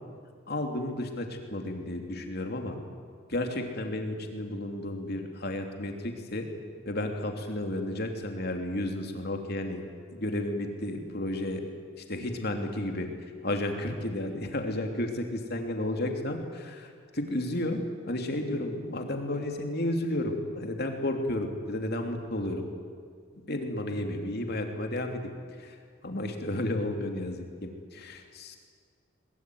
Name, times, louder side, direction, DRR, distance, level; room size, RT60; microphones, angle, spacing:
voice 1, 0.5-2.8 3.3-6.5 6.8-9.8 10.1-11.6 12.0-13.1 13.4-22.7 23.5-25.3 25.6-25.8 26.0-28.6, left 1 dB, 50° left, 4 dB, 3.1 m, -32 dB
22.5 x 22.0 x 9.5 m, 2.1 s
head